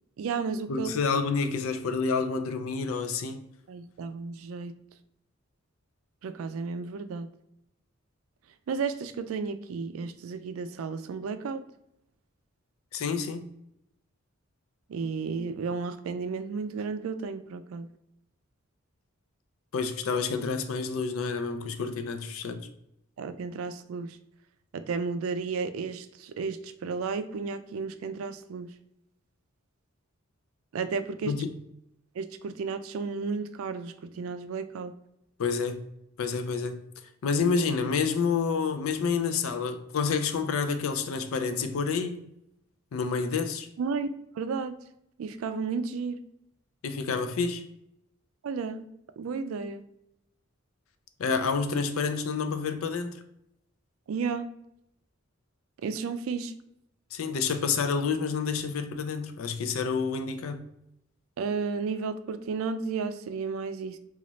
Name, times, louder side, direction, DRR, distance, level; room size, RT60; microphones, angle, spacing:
voice 1, 0.2-0.9 3.7-4.7 6.2-7.3 8.7-11.6 14.9-17.9 23.2-24.2 24.7-28.7 30.7-31.3 32.2-34.9 43.8-44.1 44.4-44.8 45.2-46.2 48.4-48.9 49.2-49.8 54.1-54.5 55.8-56.5 61.4-64.0, right 5 dB, 75° right, 0.3 m, -33 dB
voice 2, 0.7-3.5 12.9-13.5 19.7-22.7 31.2-31.5 35.4-35.8 36.2-36.8 37.2-42.2 42.9-43.7 46.8-47.6 51.2-53.2 57.1-60.6, left 5 dB, 80° left, 0.4 m, -29 dB
3.9 x 2.4 x 3.0 m
head